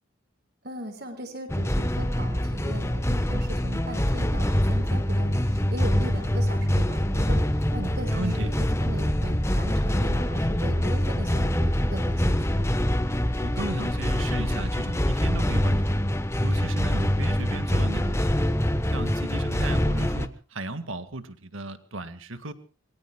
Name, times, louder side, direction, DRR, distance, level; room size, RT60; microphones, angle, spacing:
voice 1, 0.6-12.6, right 1 dB, 50° right, 7 dB, 5.6 m, -38 dB
sound 1, 1.5-20.3, equal, 15° left, 1.1 m, -25 dB
voice 2, 8.1-8.5 13.4-16.0 16.4-18.5 18.9-22.5, right 2 dB, 70° right, 11 dB, 1.9 m, -36 dB
27.0 x 23.0 x 2.3 m, 0.38 s
head